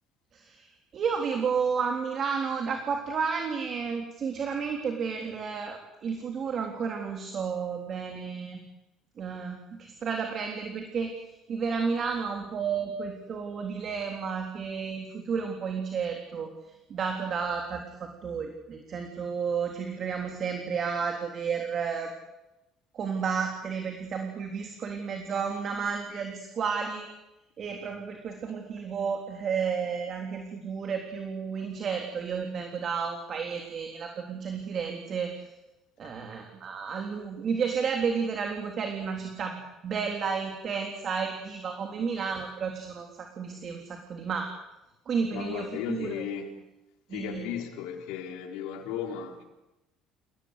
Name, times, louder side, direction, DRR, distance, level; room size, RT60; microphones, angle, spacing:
voice 1, 0.3-8.6 9.2-16.5 16.9-22.1 22.9-27.1 27.6-35.5 36.0-44.5 45.1-46.3 47.1-47.5, right 6 dB, 40° right, 3.6 m, -32 dB
voice 2, 45.3-46.5 47.1-49.4, left 9 dB, 90° left, 4.2 m, -35 dB
29.0 x 18.5 x 8.4 m
cardioid pair, 125°, 0 cm